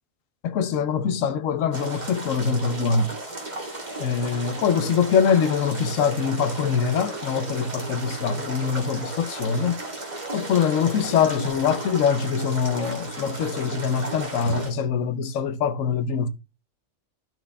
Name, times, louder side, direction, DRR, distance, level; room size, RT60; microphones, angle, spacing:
voice 1, 0.4-3.2 4.0-9.8 10.3-16.3, left 6 dB, 80° left, 1.1 m, -23 dB
sound 1, 1.7-14.7, right 2 dB, 35° right, 2.1 m, -35 dB
Rain, 3.4-11.4, equal, 15° right, 1.4 m, -49 dB
12.0 x 6.0 x 2.3 m
omnidirectional pair, 1.3 m